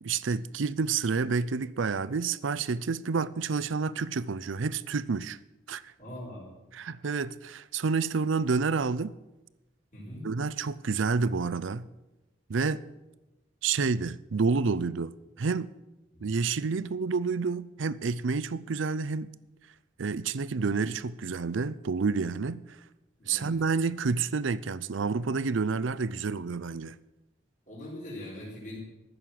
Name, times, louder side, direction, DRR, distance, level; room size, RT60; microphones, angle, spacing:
voice 1, 0.0-5.4 5.7-5.9 6.7-9.1 10.2-11.9 12.5-12.8 13.6-15.7 16.2-19.3 20.0-22.6 23.3-27.0, right 4 dB, 90° right, 0.5 m, -29 dB
voice 2, 6.0-6.5 9.9-10.3 16.1-16.2 23.2-23.5 27.7-28.8, left 1 dB, 40° left, 5.0 m, -41 dB
15.0 x 6.6 x 9.2 m
head